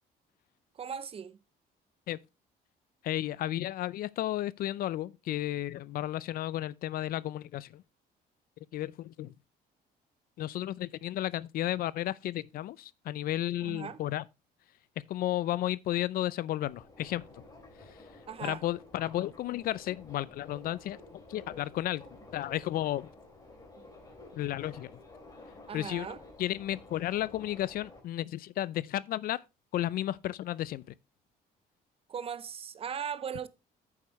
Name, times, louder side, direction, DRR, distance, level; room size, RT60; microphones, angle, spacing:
voice 1, 0.7-1.4 13.6-14.0 18.3-18.6 25.7-26.2 32.1-33.5, right 7 dB, 35° right, 0.6 m, -38 dB
voice 2, 3.0-7.8 8.7-9.3 10.4-14.2 15.1-17.3 18.4-22.0 22.3-23.1 24.3-24.9 25.7-29.4 29.7-30.8, left 13 dB, 60° left, 0.4 m, -33 dB
Subway metro underground, 16.6-28.0, left 2 dB, 20° left, 3.3 m, -52 dB
9.1 x 7.3 x 3.1 m
cardioid pair, 110°, 17 cm